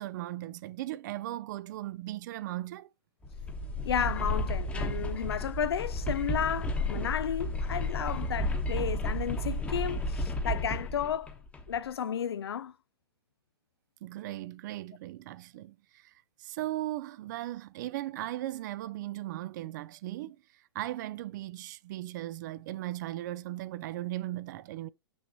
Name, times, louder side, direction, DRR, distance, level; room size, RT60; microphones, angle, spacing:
voice 1, 0.0-2.9 14.0-16.1 16.4-20.4 20.7-24.9, right 15 dB, 50° right, 0.5 m, -37 dB
Small Earthquake Indoors Sound Effect, 3.2-11.8, left 1 dB, 10° left, 1.1 m, -32 dB
voice 2, 3.8-11.3 11.7-12.7, left 8 dB, 80° left, 0.5 m, -33 dB
6.2 x 6.1 x 2.8 m
hypercardioid pair, 130°, 13 cm